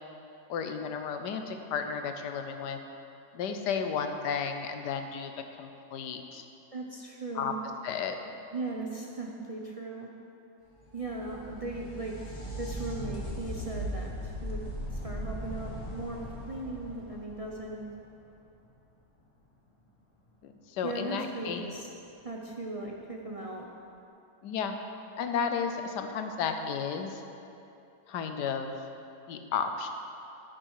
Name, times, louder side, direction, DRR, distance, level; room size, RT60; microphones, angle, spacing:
voice 1, 0.5-2.8 3.3-6.4 7.3-7.5 7.8-8.1 20.4-21.7 24.4-24.7 25.2-27.2 28.1-28.7 29.3-29.9, left 6 dB, 85° left, 6 dB, 1.4 m, -33 dB
voice 2, 6.7-7.6 8.5-10.1 10.9-14.6 14.9-17.8 20.8-21.9 22.2-23.7, right 2 dB, 40° right, -1 dB, 0.5 m, -38 dB
sound 1, 10.8-18.3 21.7-21.8 22.9-23.0, equal, 20° left, 1.3 m, -39 dB
9.9 x 9.1 x 4.8 m, 2.8 s
omnidirectional pair, 1.8 m